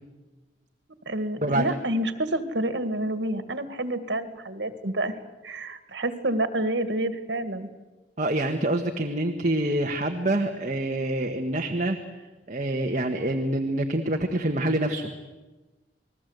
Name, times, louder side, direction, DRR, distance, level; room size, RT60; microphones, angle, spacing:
voice 1, 1.1-5.2 5.4-7.7, right 1 dB, 80° right, 9 dB, 2.0 m, -28 dB
voice 2, 8.2-12.0 12.5-15.1, right 1 dB, 45° right, 3 dB, 1.5 m, -26 dB
28.5 x 20.0 x 8.1 m, 1.2 s
head